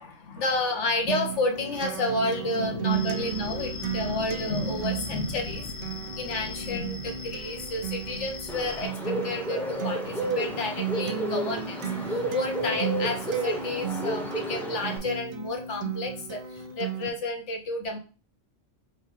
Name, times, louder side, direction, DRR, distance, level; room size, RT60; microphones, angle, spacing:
voice 1, 0.0-18.0, left 2 dB, 65° left, 4 dB, 1.1 m, -31 dB
Acoustic guitar, 1.1-17.1, right 8 dB, 65° right, 0.5 m, -35 dB
sound 1, 2.9-8.9, left 3 dB, 35° left, 0.9 m, -40 dB
Bird, 8.5-15.0, equal, ahead, 0.5 m, -31 dB
3.1 x 3.0 x 4.3 m, 0.34 s
omnidirectional pair, 1.3 m